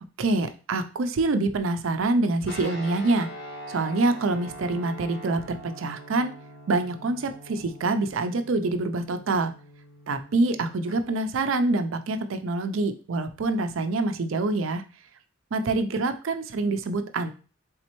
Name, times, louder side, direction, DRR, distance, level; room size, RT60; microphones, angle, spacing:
voice 1, 0.2-3.3 3.7-6.3 6.7-9.5 10.1-14.8 15.5-17.3, right 2 dB, 70° right, 9 dB, 0.5 m, -26 dB
Guitar, 2.5-11.0, right 1 dB, 60° left, 1.3 m, -43 dB
4.2 x 3.5 x 2.9 m, 0.35 s
head